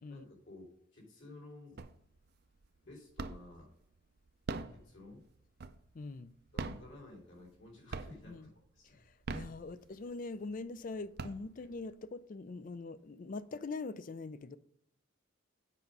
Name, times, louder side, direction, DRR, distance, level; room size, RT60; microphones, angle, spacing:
voice 1, 0.1-1.8 2.8-3.7 4.7-5.3 6.5-9.0 11.6-11.7, left 2 dB, 60° left, 3.1 m, -54 dB
sound 1, 1.8-2.3 2.6-3.6 4.3-6.0 6.5-7.6 7.9-8.5 9.1-10.1 10.6-10.7 11.0-11.9, right 3 dB, 50° right, 0.5 m, -42 dB
voice 2, 5.9-6.3 8.3-8.5 8.9-14.6, left 3 dB, 40° left, 0.4 m, -43 dB
8.3 x 5.2 x 5.4 m
head